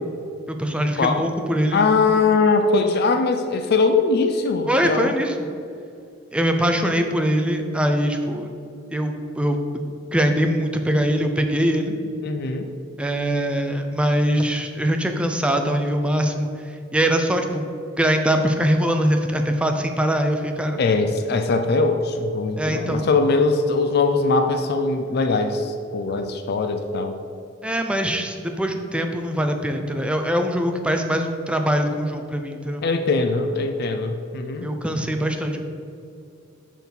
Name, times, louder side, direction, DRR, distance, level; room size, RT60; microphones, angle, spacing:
voice 1, 0.5-1.8 4.7-5.4 6.3-8.5 8.9-9.6 10.1-11.9 13.0-16.5 16.9-17.7 18.0-20.8 22.6-23.1 27.6-32.8 34.6-35.6, equal, 5° right, 4 dB, 0.5 m, -22 dB
voice 2, 1.7-5.1 12.2-12.7 20.8-27.2 32.8-34.7, left 3 dB, 55° left, 6 dB, 0.4 m, -21 dB
6.2 x 4.5 x 5.3 m, 2.5 s
head